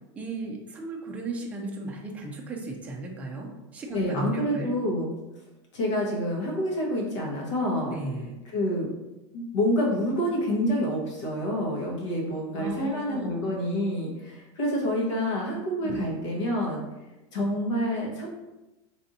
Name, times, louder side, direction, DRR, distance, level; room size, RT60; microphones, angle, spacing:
voice 1, 0.1-4.8 7.9-8.3 12.6-13.5 15.8-16.2, right 2 dB, 10° right, 0 dB, 0.4 m, -35 dB
voice 2, 3.9-5.1 5.7-8.0 8.4-8.9 9.3-16.8 17.3-18.3, equal, 85° left, -2 dB, 1.2 m, -27 dB
3.4 x 2.6 x 4.0 m, 1.0 s
supercardioid pair, 165°, 15 cm